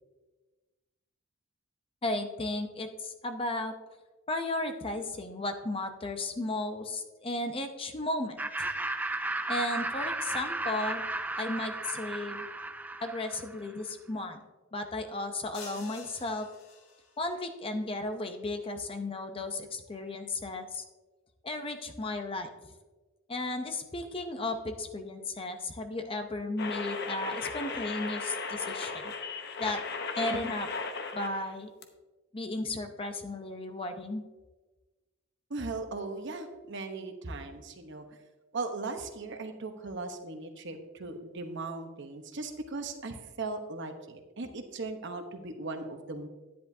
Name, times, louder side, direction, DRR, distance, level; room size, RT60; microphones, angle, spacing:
voice 1, 2.0-3.7 4.3-8.7 9.5-11.0 11.3-12.5 13.0-14.4 14.7-16.5 17.2-20.8 21.4-22.5 23.3-29.1 29.6-29.8 30.1-30.7 31.1-31.7 32.3-34.2, left 2 dB, 25° left, 7 dB, 0.6 m, -34 dB
Laughter, 8.4-13.7, right 2 dB, 10° right, 0.3 m, -34 dB
sound 1, 15.5-17.3, left 4 dB, 75° left, 1.4 m, -48 dB
sound 2, 26.6-31.5 31.8-31.9, left 4 dB, 50° left, 0.9 m, -36 dB
voice 2, 35.5-38.0 38.5-46.3, right 3 dB, 60° right, 6 dB, 1.0 m, -38 dB
10.5 x 10.0 x 2.7 m, 1.2 s
head